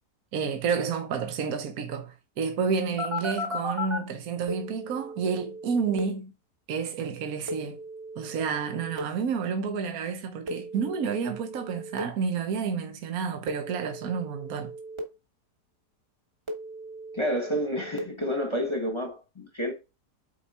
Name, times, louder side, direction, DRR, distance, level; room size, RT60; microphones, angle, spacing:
voice 1, 0.3-6.3 6.7-7.8 8.2-14.7, right 6 dB, 60° right, 1.3 m, -30 dB
Telephone, 3.0-4.0 4.5-6.0 7.5-9.0 10.5-12.0 13.5-15.0 16.5-18.0, left 1 dB, 20° right, 1.3 m, -37 dB
voice 2, 17.1-19.7, equal, 20° left, 1.1 m, -29 dB
8.2 x 4.8 x 4.2 m
omnidirectional pair, 1.8 m